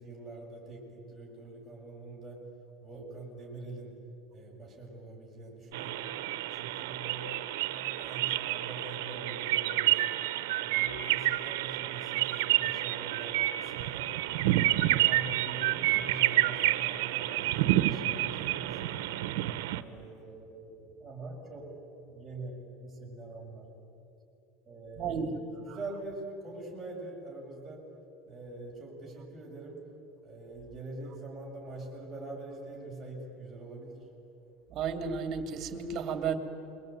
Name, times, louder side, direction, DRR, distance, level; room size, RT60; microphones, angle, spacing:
voice 1, 0.0-2.5 2.8-4.0 4.3-6.2 6.5-10.2 10.6-14.2 14.6-19.2 19.7-21.8 22.1-23.7 24.6-27.9 28.3-29.9 30.2-34.1, right 2 dB, 5° right, -6 dB, 7.6 m, -44 dB
sound 1, 5.7-19.8, right 15 dB, 80° right, 1.0 m, -29 dB
voice 2, 24.9-25.3 25.7-26.0 34.7-36.4, right 6 dB, 40° right, 7 dB, 2.9 m, -33 dB
27.5 x 23.0 x 9.4 m, 2.9 s
supercardioid pair, 130°, 0 cm